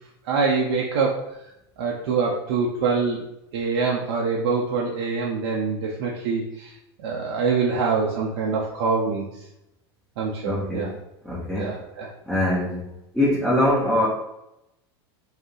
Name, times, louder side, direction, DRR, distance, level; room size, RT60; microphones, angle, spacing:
voice 1, 0.3-1.2 1.8-3.2 3.5-6.7 7.0-9.3 10.2-10.9 11.5-12.1, right 4 dB, 70° right, -3 dB, 0.5 m, -24 dB
voice 2, 10.4-11.0 11.2-11.7 12.3-14.1, left 1 dB, ahead, -7 dB, 0.7 m, -23 dB
2.4 x 2.0 x 3.6 m, 0.86 s
hypercardioid pair, 110°, 14 cm